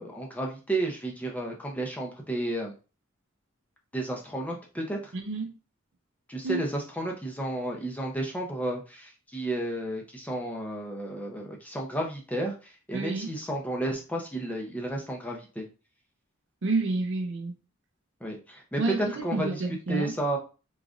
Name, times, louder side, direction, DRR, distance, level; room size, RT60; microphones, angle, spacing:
voice 1, 0.0-2.7 3.9-5.1 6.3-12.5 12.9-15.6 18.2-19.6 19.9-20.4, right 1 dB, 5° left, 0.7 m, -32 dB
voice 2, 5.1-5.5 6.4-6.6 12.9-13.3 16.6-17.5 18.8-20.1, right 3 dB, 60° right, 0.6 m, -29 dB
3.7 x 3.1 x 2.5 m
head